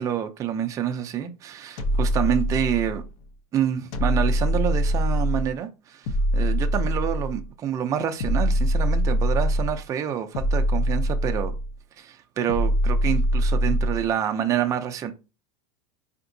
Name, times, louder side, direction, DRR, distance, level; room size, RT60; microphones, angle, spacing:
voice 1, 0.0-3.0 3.5-11.5 12.0-15.1, right 9 dB, 20° right, 0.4 m, -27 dB
sound 1, 1.8-3.1 3.9-5.6 6.1-7.5 8.2-9.8 10.3-11.7 12.5-14.1, equal, 60° left, 0.8 m, -23 dB
4.4 x 2.8 x 2.6 m
supercardioid pair, 165°, 18 cm